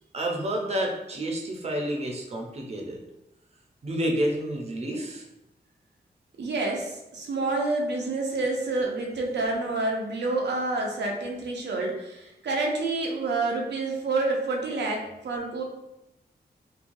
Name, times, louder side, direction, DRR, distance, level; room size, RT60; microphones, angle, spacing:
voice 1, 0.1-3.0 3.8-5.2, right 1 dB, 40° right, 1 dB, 0.5 m, -29 dB
voice 2, 6.4-15.6, right 3 dB, 90° right, 0 dB, 0.6 m, -28 dB
3.0 x 2.2 x 2.5 m, 0.93 s
wide cardioid pair, 130°, 17 cm